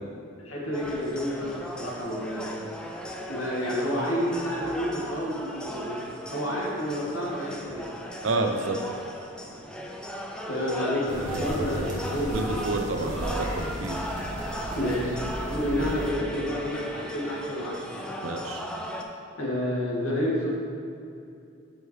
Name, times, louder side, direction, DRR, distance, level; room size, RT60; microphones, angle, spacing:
voice 1, 0.4-2.6 3.3-6.0 6.3-7.9 10.5-12.6 14.7-18.0 19.4-20.6, equal, 85° left, -4 dB, 2.0 m, -30 dB
sound 1, 0.7-19.0, equal, 5° left, 0.5 m, -37 dB
voice 2, 8.2-8.8 12.3-14.0 18.2-18.7, right 3 dB, 70° right, 5 dB, 0.6 m, -29 dB
sound 2, 11.1-16.1, equal, 40° right, 1.5 m, -34 dB
12.5 x 4.8 x 3.2 m, 2.6 s
head